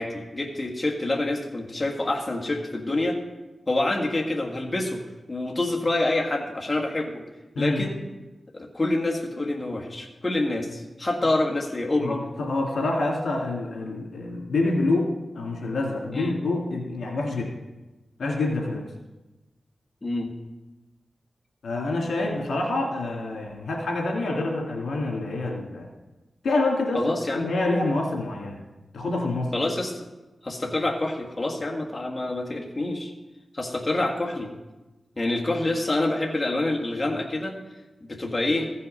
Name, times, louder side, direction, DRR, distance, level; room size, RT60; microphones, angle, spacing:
voice 1, 0.0-3.2 3.7-5.0 5.3-7.2 7.6-8.0 8.5-12.2 16.1-16.3 20.0-20.3 26.9-27.4 29.5-30.1 30.4-33.1 33.5-34.5 35.2-37.6 38.1-38.7, left 2 dB, 30° left, 0 dB, 1.5 m, -27 dB
voice 2, 7.6-7.9 12.0-17.5 18.2-18.8 21.6-25.9 26.4-27.0 27.3-28.6 28.9-29.5, left 2 dB, 85° left, -1 dB, 2.1 m, -27 dB
15.0 x 5.6 x 5.3 m, 1.1 s
cardioid pair, 65°, 0 cm